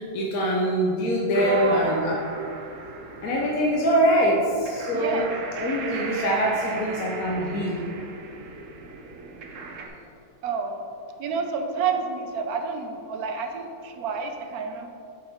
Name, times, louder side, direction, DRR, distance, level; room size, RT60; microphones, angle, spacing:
voice 1, 0.0-2.2 3.2-5.2 5.6-7.8, equal, 70° left, -3 dB, 1.3 m, -23 dB
sound 1, 1.3-9.9, right 4 dB, 60° right, 1.1 m, -38 dB
voice 2, 1.4-2.1 4.9-5.3 6.7-6.8 7.5-7.7 10.4-10.8 11.2-14.9, right 4 dB, 80° right, 5 dB, 1.2 m, -29 dB
8.1 x 6.5 x 3.5 m, 2.6 s
omnidirectional pair, 1.6 m